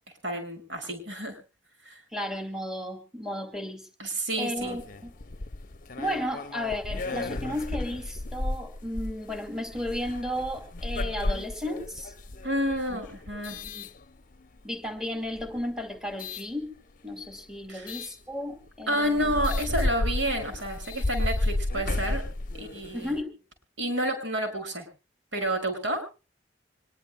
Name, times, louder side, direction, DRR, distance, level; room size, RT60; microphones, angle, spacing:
voice 1, 0.2-1.3 1.8-2.0 4.0-4.8 12.4-13.6 17.7-17.9 18.9-22.2 22.5-23.1 23.8-24.9 25.3-26.0, right 1 dB, 85° right, 5 dB, 6.4 m, -29 dB
voice 2, 2.1-3.9 4.4-5.1 6.0-12.1 12.9-13.0 13.6-13.9 14.6-16.7 17.0-19.4 22.9-23.3, left 1 dB, 5° right, 5 dB, 2.4 m, -34 dB
sound 1, 4.6-14.6 15.2-16.5 17.9-18.1 18.7-18.8 19.0-23.2, left 2 dB, 45° left, 0.7 m, -33 dB
25.5 x 21.0 x 2.2 m, 0.34 s
head